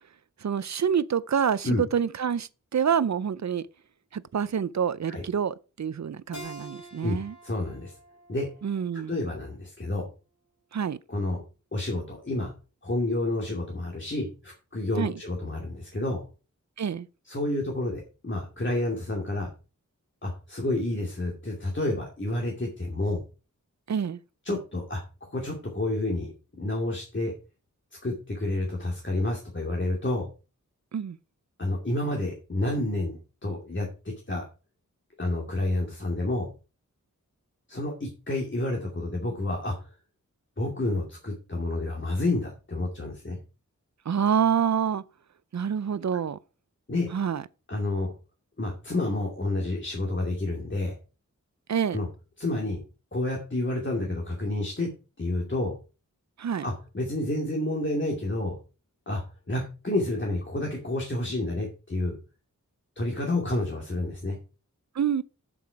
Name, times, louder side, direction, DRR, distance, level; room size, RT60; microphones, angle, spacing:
voice 1, 0.4-3.7 4.1-7.3 8.6-9.2 10.7-11.0 15.0-15.1 16.8-17.1 23.9-24.2 30.9-31.2 44.1-45.0 45.5-46.4 47.1-47.4 51.7-52.0 56.4-56.7 65.0-65.2, right 7 dB, 60° right, 0.6 m, -27 dB
Keyboard (musical), 6.3-9.6, equal, 55° left, 3.2 m, -47 dB
voice 2, 7.4-7.9 8.3-8.5 8.9-10.1 11.1-11.4 11.7-12.5 12.8-16.2 17.3-19.5 20.2-23.2 24.4-26.3 26.6-27.3 28.0-30.3 31.6-34.4 35.2-36.5 37.7-39.7 40.6-43.4 46.9-47.1 47.7-48.1 48.6-50.9 51.9-52.1 52.4-52.8 53.1-54.9 55.2-55.7 56.6-58.6 59.1-59.2 59.5-62.2 63.0-64.4, left 2 dB, 40° left, 2.5 m, -29 dB
7.8 x 7.6 x 4.7 m
wide cardioid pair, 70°, 31 cm